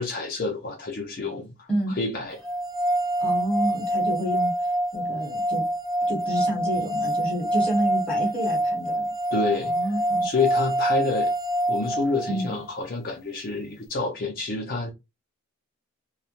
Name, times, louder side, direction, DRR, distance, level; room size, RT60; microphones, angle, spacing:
voice 1, 0.0-2.4 9.3-9.7 10.2-11.3 11.7-14.9, left 3 dB, 45° left, 0.4 m, -28 dB
sound 1, 2.4-12.6, right 1 dB, 15° right, 0.9 m, -26 dB
voice 2, 3.2-4.5 4.9-5.6 6.1-9.1 9.6-10.2 12.3-12.5, right 1 dB, 5° left, 1.1 m, -29 dB
2.2 x 2.0 x 2.8 m
head